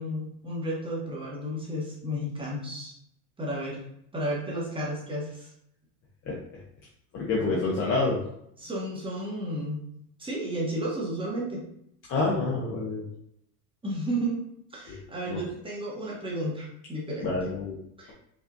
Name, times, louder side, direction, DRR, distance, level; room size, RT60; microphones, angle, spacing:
voice 1, 0.0-3.0 3.4-3.8 4.1-5.5 8.6-9.8 10.2-11.6 13.8-14.4 14.7-17.3 18.0-18.1, right 1 dB, 10° right, -4 dB, 1.0 m, -32 dB
voice 2, 7.1-8.2 12.1-13.1 14.9-15.0 15.3-15.4 17.2-17.8, left 3 dB, 25° left, -4 dB, 0.6 m, -27 dB
4.8 x 2.3 x 2.6 m, 0.72 s
supercardioid pair, 140°, 49 cm